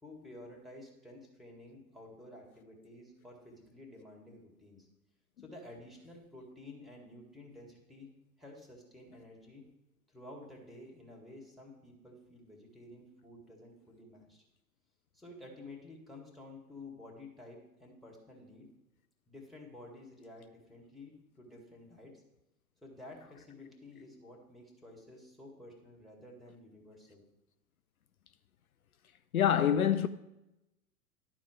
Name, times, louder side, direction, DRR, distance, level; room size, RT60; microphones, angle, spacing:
voice 1, 0.0-4.9 5.4-8.1 8.4-9.7 10.1-14.4 15.1-18.7 19.3-22.2 22.8-27.2, left 2 dB, ahead, 1.8 m, -52 dB
voice 2, 29.3-30.1, left 9 dB, 70° left, 0.6 m, -25 dB
11.5 x 4.4 x 6.3 m
figure-of-eight pair, 100°, 44 cm